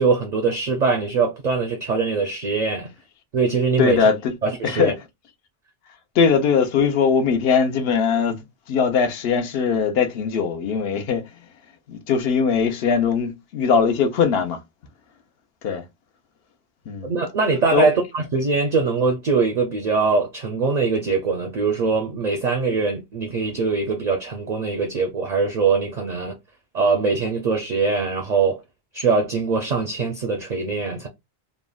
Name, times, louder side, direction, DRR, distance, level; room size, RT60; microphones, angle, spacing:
voice 1, 0.0-2.9 3.3-4.1 4.4-4.9 17.0-26.3 26.7-28.6 28.9-31.1, right 4 dB, 55° right, 0.5 m, -22 dB
voice 2, 3.8-4.3 4.6-4.9 6.2-11.2 11.9-14.6 15.6-15.8 16.9-17.1 17.7-17.9, left 6 dB, 75° left, 0.8 m, -20 dB
3.5 x 2.1 x 2.2 m
omnidirectional pair, 1.0 m